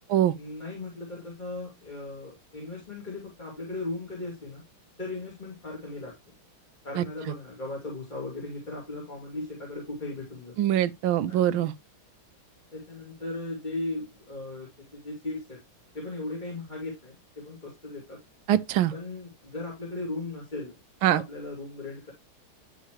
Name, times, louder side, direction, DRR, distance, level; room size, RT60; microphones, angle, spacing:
voice 1, 0.3-4.6 5.0-6.1 6.8-10.6 11.3-11.6 12.7-15.6 15.9-18.2 18.9-20.8 21.1-22.1, left 2 dB, 20° left, 2.9 m, -37 dB
voice 2, 10.6-11.7 18.5-18.9 21.0-21.2, right 11 dB, 80° right, 1.5 m, -23 dB
11.5 x 4.6 x 3.2 m
omnidirectional pair, 2.3 m